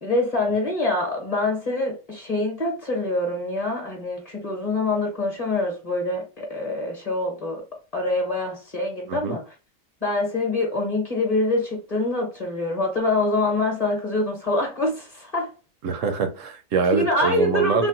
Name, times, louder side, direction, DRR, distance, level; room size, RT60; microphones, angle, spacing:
voice 1, 0.0-7.6 7.9-9.4 10.0-15.5 16.9-17.9, left 2 dB, 35° left, 0.9 m, -25 dB
voice 2, 15.8-17.9, right 5 dB, 80° right, 1.0 m, -24 dB
3.6 x 2.1 x 2.6 m
omnidirectional pair, 1.3 m